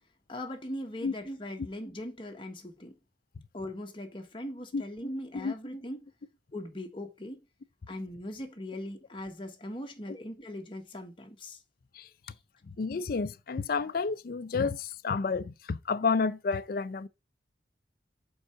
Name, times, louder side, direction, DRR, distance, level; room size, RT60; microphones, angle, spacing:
voice 1, 0.3-2.9 3.5-6.1 6.5-7.4 7.9-11.6 12.2-12.3, left 1 dB, 30° left, 1.3 m, -40 dB
voice 2, 12.7-17.1, left 4 dB, 50° left, 0.4 m, -30 dB
5.3 x 4.7 x 5.8 m
head